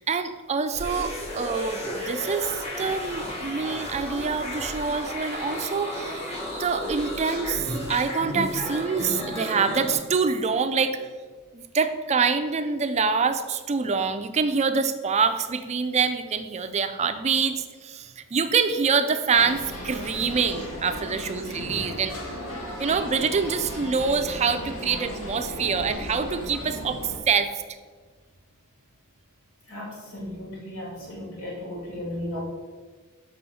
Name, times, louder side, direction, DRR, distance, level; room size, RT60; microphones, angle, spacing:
voice 1, 0.0-6.3 6.6-11.0 11.5-22.1 22.8-27.5, right 5 dB, 30° right, 9 dB, 0.4 m, -25 dB
sound 1, 0.7-9.9, equal, 30° left, 2.0 m, -33 dB
sound 2, 19.3-27.2, left 1 dB, 65° left, 1.4 m, -36 dB
voice 2, 29.7-32.4, left 1 dB, 85° left, -4 dB, 2.1 m, -36 dB
6.8 x 5.4 x 4.2 m, 1.5 s
head